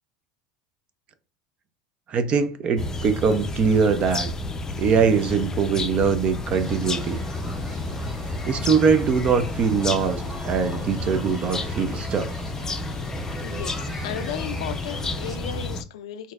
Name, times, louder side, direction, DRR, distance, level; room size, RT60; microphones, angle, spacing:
voice 1, 2.1-4.3 4.8-7.2 8.5-12.3, right 6 dB, 40° right, 0.5 m, -22 dB
sound 1, 2.8-15.8, left 2 dB, 20° left, 0.5 m, -31 dB
sound 2, 6.5-15.3, left 1 dB, 5° right, 1.4 m, -40 dB
sound 3, 8.6-13.9, left 1 dB, 65° right, 2.0 m, -46 dB
voice 2, 13.4-13.7 14.0-16.3, left 10 dB, 85° left, 0.4 m, -34 dB
4.3 x 2.6 x 2.4 m
supercardioid pair, 105°, 3 cm